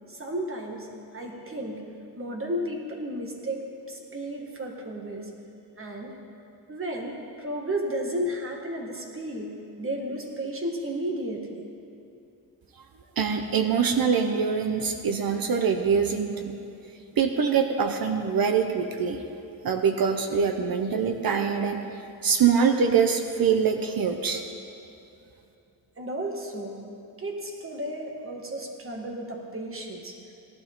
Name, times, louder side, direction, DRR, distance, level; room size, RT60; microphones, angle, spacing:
voice 1, 0.1-0.9 1.1-1.9 2.2-5.3 5.8-6.2 6.7-11.7 26.0-26.8 27.2-30.2, right 1 dB, 35° right, 1 dB, 1.7 m, -33 dB
voice 2, 13.2-16.6 17.2-19.2 19.6-21.8 22.2-24.4, right 6 dB, 65° right, 5 dB, 0.8 m, -24 dB
17.0 x 12.0 x 3.8 m, 2.7 s
wide cardioid pair, 110°, 38 cm